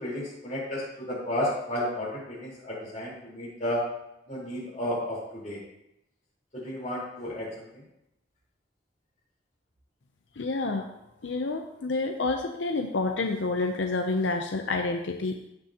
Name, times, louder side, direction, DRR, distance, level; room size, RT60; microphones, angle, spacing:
voice 1, 0.0-3.9 4.3-5.6 6.5-7.8, left 1 dB, 40° left, -5 dB, 4.0 m, -32 dB
voice 2, 10.4-10.9 11.2-15.4, left 3 dB, 85° left, 4 dB, 0.7 m, -28 dB
15.5 x 6.1 x 2.9 m, 0.84 s
head